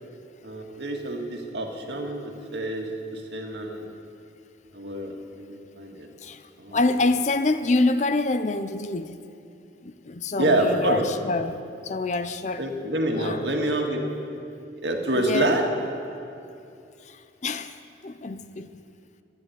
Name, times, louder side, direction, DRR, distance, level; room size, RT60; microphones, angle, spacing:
voice 1, 0.4-3.9 4.7-6.1 6.6-6.8 10.4-11.0 12.6-14.0 14.8-15.6, right 1 dB, 70° right, 2 dB, 1.9 m, -27 dB
voice 2, 6.2-9.2 9.8-12.7 13.1-13.5 15.1-15.5 17.0-18.8, left 2 dB, 40° left, 11 dB, 0.5 m, -27 dB
12.5 x 10.5 x 9.3 m, 2.6 s
head